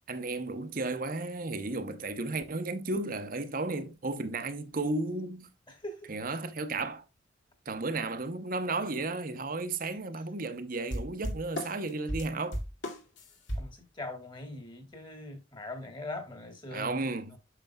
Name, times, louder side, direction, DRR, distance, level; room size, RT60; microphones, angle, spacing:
voice 1, 0.1-5.5 6.1-7.0 7.7-12.6 16.7-17.4, right 3 dB, 45° right, 0.8 m, -33 dB
sound 1, 10.9-13.7, equal, 75° left, 2.3 m, -35 dB
voice 2, 13.6-17.1, left 2 dB, 25° left, 1.9 m, -41 dB
9.0 x 6.8 x 2.3 m
head